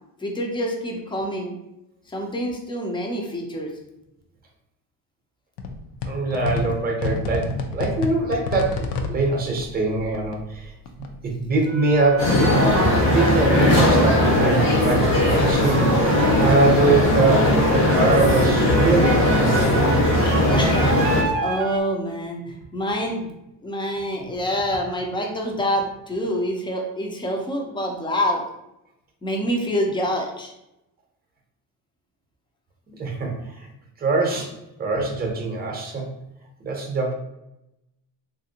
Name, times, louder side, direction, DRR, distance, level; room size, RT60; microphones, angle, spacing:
voice 1, 0.2-1.6 2.1-3.7 20.5-23.3 23.6-28.4 29.2-30.5, equal, 10° left, 0 dB, 0.4 m, -26 dB
sound 1, 5.6-12.8 13.1-15.4 15.7-18.6, left 3 dB, 70° left, 0.6 m, -33 dB
voice 2, 6.0-10.7 11.2-19.5 33.0-33.7 34.0-36.1 36.6-37.1, right 3 dB, 20° right, 1 dB, 0.7 m, -23 dB
sound 2, 8.8-8.9 11.6-16.7 17.8-21.8, right 5 dB, 80° right, 0.6 m, -31 dB
sound 3, 12.2-21.2, left 1 dB, 85° left, 1.2 m, -18 dB
3.2 x 2.6 x 2.8 m, 0.87 s
cardioid pair, 130°, 43 cm